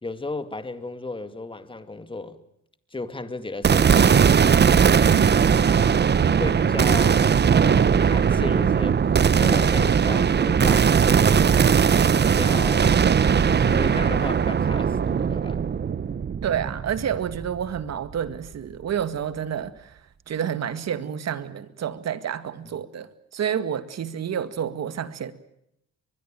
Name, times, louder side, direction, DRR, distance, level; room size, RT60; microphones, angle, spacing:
voice 1, 0.0-2.4 2.9-4.3 6.4-7.3 7.6-9.0 9.4-11.5 12.2-13.0 13.4-15.7, left 3 dB, 15° left, 2.2 m, -35 dB
sound 1, 3.6-17.9, right 7 dB, 35° right, 0.9 m, -19 dB
voice 2, 4.9-5.3 16.4-20.0 20.3-25.3, right 8 dB, 60° right, 2.0 m, -29 dB
23.5 x 21.5 x 9.0 m
cardioid pair, 90°, 30 cm